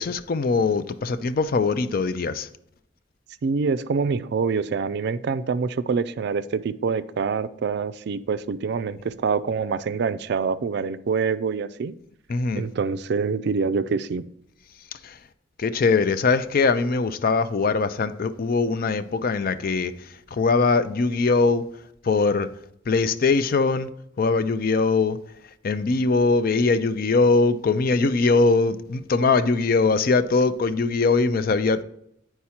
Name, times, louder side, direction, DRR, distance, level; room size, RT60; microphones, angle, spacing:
voice 1, 0.0-2.5 12.3-12.7 15.0-15.2 15.6-21.7 22.0-22.5 22.9-23.9 24.2-25.2 25.6-31.8, left 4 dB, 50° left, 0.4 m, -21 dB
voice 2, 3.4-12.0 12.6-14.3, right 5 dB, 60° right, 0.4 m, -25 dB
9.7 x 4.7 x 4.3 m
head